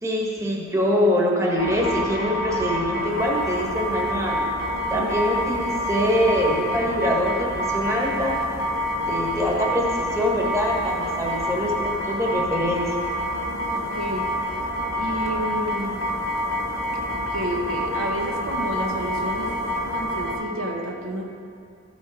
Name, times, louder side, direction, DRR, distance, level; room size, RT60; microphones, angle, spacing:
voice 1, 0.0-4.4 4.9-8.3 9.1-12.8, equal, 15° right, -3 dB, 1.3 m, -24 dB
sound 1, 1.6-20.4, equal, 80° left, 2.0 m, -27 dB
voice 2, 13.7-14.3 15.0-16.0 17.1-19.5 19.9-21.2, equal, 75° right, 0 dB, 1.1 m, -30 dB
13.5 x 5.2 x 5.1 m, 2.3 s
head